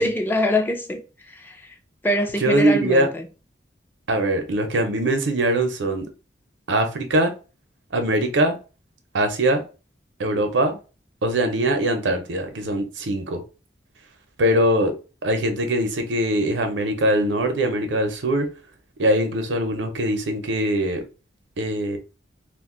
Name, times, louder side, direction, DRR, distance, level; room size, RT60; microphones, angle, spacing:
voice 1, 0.0-1.7 2.0-3.3, left 1 dB, 10° left, 0.3 m, -24 dB
voice 2, 2.4-3.1 4.1-6.1 6.7-7.3 7.9-8.6 9.1-9.6 10.2-10.8 11.2-13.4 14.4-14.9 15.2-18.5 19.0-21.0 21.6-22.0, right 1 dB, 85° right, 0.7 m, -22 dB
2.5 x 2.2 x 3.6 m
head